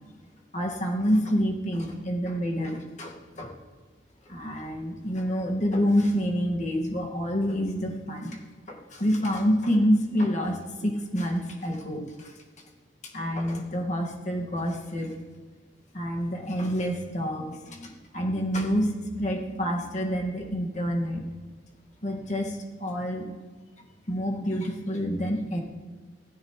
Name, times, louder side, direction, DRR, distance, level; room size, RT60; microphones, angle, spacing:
voice 1, 0.5-3.5 4.3-8.4 8.7-10.6 10.8-12.3 13.1-15.2 15.9-21.2 22.0-23.2 24.1-25.6, equal, 45° left, 0 dB, 2.1 m, -27 dB
15.5 x 14.0 x 3.3 m, 1.4 s
head